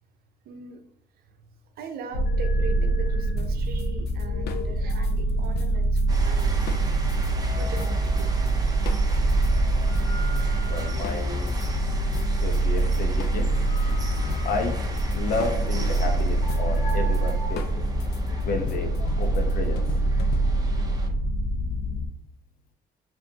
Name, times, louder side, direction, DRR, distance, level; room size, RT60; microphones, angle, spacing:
voice 1, 0.5-0.8 1.8-6.7 7.5-8.4, right 5 dB, 65° right, 6 dB, 0.7 m, -40 dB
sound 1, 2.1-22.1, right 1 dB, 90° left, 0.9 m, -25 dB
sound 2, 3.4-7.3 7.8-8.5 8.9-11.7 12.1-20.8, left 6 dB, 70° left, 0.5 m, -41 dB
sound 3, 6.1-21.1, right 4 dB, 20° right, 0.7 m, -32 dB
voice 2, 10.7-11.5 12.4-13.5 14.4-14.8 15.1-17.8 18.4-19.8, left 3 dB, 55° left, 4 dB, 0.9 m, -31 dB
5.7 x 2.6 x 2.8 m, 0.75 s
cardioid pair, 110°, 17 cm